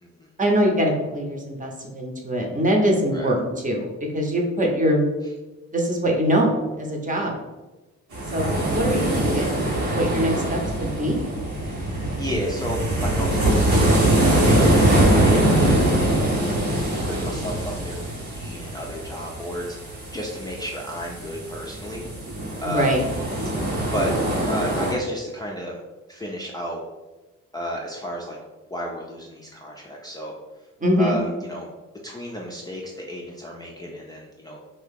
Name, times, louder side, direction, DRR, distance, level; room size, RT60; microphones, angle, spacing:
voice 1, 0.4-3.9 4.1-5.1 5.7-7.4 8.3-11.3 22.6-23.0 30.8-31.2, equal, 25° right, 1 dB, 0.8 m, -23 dB
sound 1, 8.1-24.9, right 1 dB, 80° right, 1.2 m, -23 dB
voice 2, 12.2-16.3 17.0-22.4 22.6-23.1 23.8-24.1 24.5-25.8 26.1-26.8 27.5-28.4 28.7-30.3 31.0-31.7 32.0-34.6, equal, 15° left, -3 dB, 0.4 m, -32 dB
2.8 x 2.8 x 3.6 m, 1.1 s
cardioid pair, 90°, 30 cm